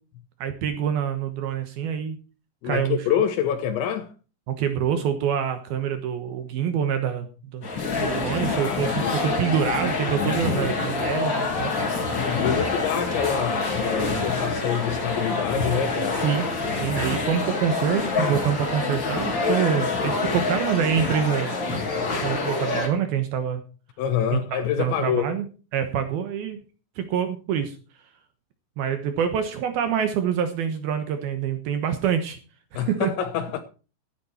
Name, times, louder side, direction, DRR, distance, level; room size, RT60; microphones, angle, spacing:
voice 1, 0.4-2.2 2.6-3.0 4.5-7.7 8.0-11.7 12.6-12.7 16.2-16.5 16.7-21.5 22.2-23.6 24.3-25.5 25.7-26.6 27.0-27.8 28.8-32.4 32.7-33.1, right 8 dB, 70° right, 2.5 m, -26 dB
voice 2, 2.6-4.1 7.8-9.1 12.1-16.3 22.0-22.1 24.0-25.3 32.7-33.6, left 9 dB, 75° left, 3.1 m, -27 dB
sound 1, 7.6-22.9, left 3 dB, 30° left, 2.5 m, -26 dB
14.5 x 10.5 x 4.4 m
omnidirectional pair, 5.5 m